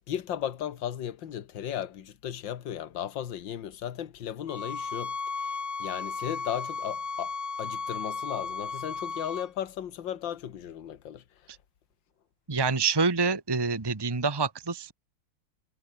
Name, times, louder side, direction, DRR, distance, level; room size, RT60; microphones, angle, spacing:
voice 1, 0.1-5.1 5.4-5.5 5.8-7.3 7.6-11.2, left 10 dB, 60° left, 2.1 m, -35 dB
sound 1, 4.5-9.5, left 4 dB, 40° left, 3.0 m, -35 dB
voice 2, 12.5-14.9, right 4 dB, 25° right, 0.5 m, -26 dB
omnidirectional pair, 2.4 m